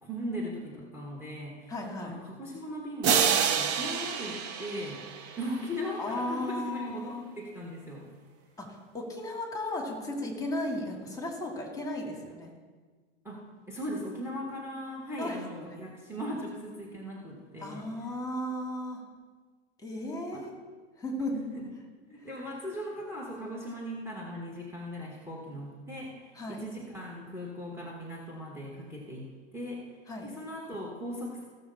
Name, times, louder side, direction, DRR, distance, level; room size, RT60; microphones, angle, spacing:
voice 1, 0.0-1.7 2.0-5.1 5.4-8.1 13.2-13.4 13.7-17.9 20.3-20.4 21.3-21.7 22.0-29.9 30.2-31.4, equal, 5° right, -2 dB, 2.0 m, -38 dB
voice 2, 1.7-2.1 6.0-7.2 8.6-12.5 15.2-15.8 17.6-19.0 19.8-20.5 21.0-21.3 22.2-22.3 26.4-26.6 30.1-30.3, left 1 dB, 10° left, 0 dB, 2.5 m, -35 dB
sound 1, 3.0-5.7, right 7 dB, 40° right, 1.1 m, -28 dB
16.0 x 6.8 x 4.3 m, 1.5 s
hypercardioid pair, 90°, 35 cm